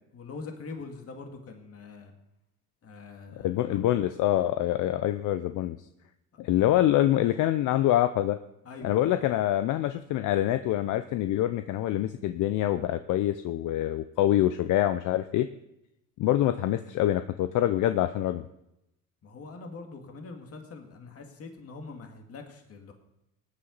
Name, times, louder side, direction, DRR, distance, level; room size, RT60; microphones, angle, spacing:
voice 1, 0.1-2.1 2.8-3.8 8.6-9.2 19.2-22.9, left 4 dB, 40° left, 4 dB, 2.3 m, -43 dB
voice 2, 3.4-5.8 6.4-8.4 8.8-15.5 16.2-18.4, left 13 dB, 60° left, 10 dB, 0.7 m, -25 dB
17.5 x 9.8 x 4.0 m, 0.86 s
supercardioid pair, 95°, 35 cm